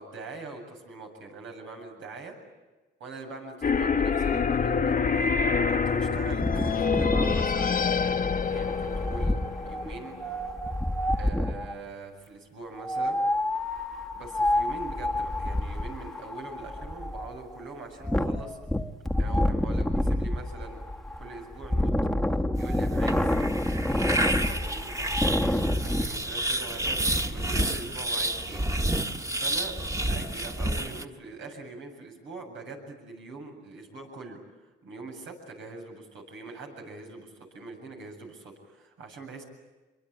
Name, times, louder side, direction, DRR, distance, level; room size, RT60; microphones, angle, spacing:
voice 1, 0.0-2.4 3.0-5.3 5.7-7.8 8.5-10.2 11.1-13.2 14.1-18.6 19.2-20.8 21.2-21.9 22.6-23.3 23.8-28.7 29.1-29.8 30.1-34.4 34.8-39.4, right 3 dB, 75° right, 2 dB, 7.8 m, -43 dB
sound 1, 3.6-10.4, left 5 dB, 45° left, 1.1 m, -26 dB
Wind, 6.3-11.7 12.8-26.0, left 1 dB, ahead, 1.5 m, -28 dB
sound 2, 22.6-31.1, right 1 dB, 15° right, 1.6 m, -30 dB
26.5 x 23.5 x 8.8 m, 1.2 s
cardioid pair, 90°, 20 cm